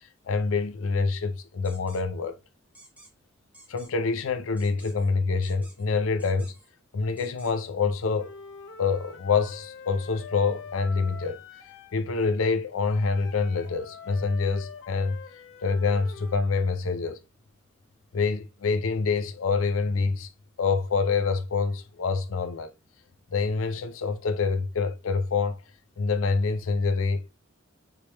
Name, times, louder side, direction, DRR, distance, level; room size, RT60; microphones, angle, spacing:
voice 1, 0.3-2.4 3.7-6.5 6.9-8.3 8.8-11.4 11.9-15.2 15.6-17.2 18.1-20.3 20.6-22.7 23.3-25.6 26.0-27.2, left 4 dB, 90° left, 0.5 m, -26 dB
sound 1, 1.6-2.0 2.7-3.1 3.5-3.9 4.6-5.1 5.4-5.8 6.2-6.7 7.2-7.5, right 1 dB, 10° right, 0.9 m, -52 dB
Wind instrument woodwind instrument, 8.2-12.0 12.8-16.5, left 5 dB, 65° left, 0.8 m, -45 dB
4.7 x 3.3 x 2.9 m
head